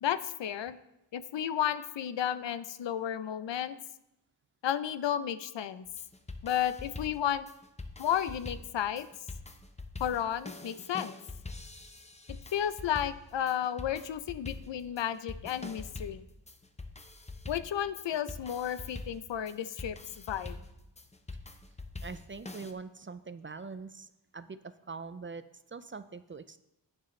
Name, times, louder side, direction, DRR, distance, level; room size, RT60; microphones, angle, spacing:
voice 1, 0.0-0.8 1.1-3.8 4.6-5.9 6.4-7.5 8.0-9.1 10.0-11.2 12.5-16.2 17.5-20.0 20.3-20.6, left 10 dB, 80° left, 14 dB, 0.6 m, -32 dB
sound 1, 5.9-22.7, left 2 dB, 15° left, 0.7 m, -45 dB
voice 2, 22.0-26.6, right 4 dB, 30° right, 12 dB, 0.4 m, -43 dB
11.0 x 8.9 x 3.2 m, 0.87 s
wide cardioid pair, 100°, 44 cm